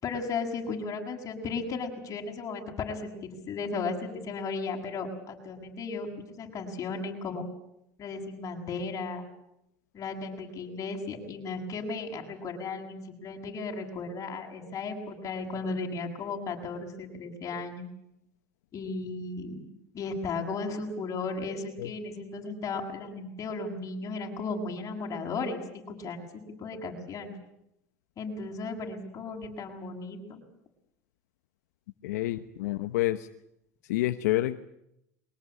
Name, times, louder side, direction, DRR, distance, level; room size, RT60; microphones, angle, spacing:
voice 1, 0.0-6.1 6.4-7.5 8.0-9.3 9.9-17.9 18.7-19.7 19.9-26.3 26.6-27.4 28.2-30.4, left 4 dB, 35° left, 1 dB, 7.4 m, -35 dB
voice 2, 32.0-33.3 33.9-34.6, left 16 dB, 80° left, 9 dB, 1.2 m, -28 dB
23.5 x 19.5 x 9.9 m, 0.81 s
supercardioid pair, 100°, 9 cm